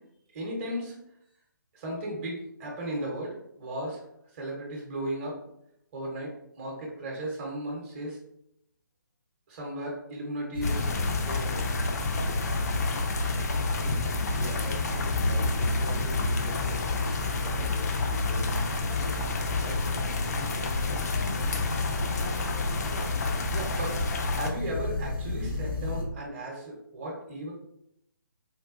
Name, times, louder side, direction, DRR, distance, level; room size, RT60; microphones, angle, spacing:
voice 1, 0.3-0.9 1.7-4.0 4.3-5.4 5.9-8.2 9.5-10.7 11.2-11.6 23.5-27.5, right 1 dB, 30° right, -2 dB, 0.8 m, -35 dB
sound 1, 10.5-26.0, left 3 dB, 90° left, 0.8 m, -33 dB
sound 2, 10.6-24.5, left 3 dB, 50° left, 0.4 m, -30 dB
voice 2, 13.7-18.6 18.9-19.8, right 1 dB, 10° right, -10 dB, 0.5 m, -43 dB
3.8 x 2.2 x 2.4 m, 0.77 s
figure-of-eight pair, 140°, 11 cm